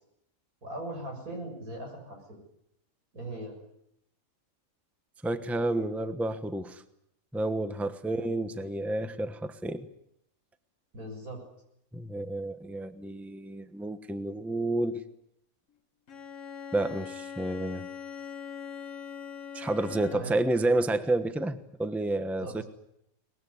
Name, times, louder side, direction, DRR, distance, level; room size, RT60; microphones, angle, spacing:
voice 1, 0.6-2.4 3.1-3.5 8.0-8.3 10.9-11.4 20.1-20.3 22.4-22.6, right 1 dB, 85° right, 2 dB, 7.5 m, -39 dB
voice 2, 5.2-6.8 7.3-9.9 11.9-15.0 16.7-17.9 19.5-22.6, right 2 dB, ahead, 10 dB, 1.0 m, -30 dB
Bowed string instrument, 16.1-20.5, left 7 dB, 60° left, 1.7 m, -41 dB
23.0 x 20.5 x 9.7 m, 0.78 s
omnidirectional pair, 1.5 m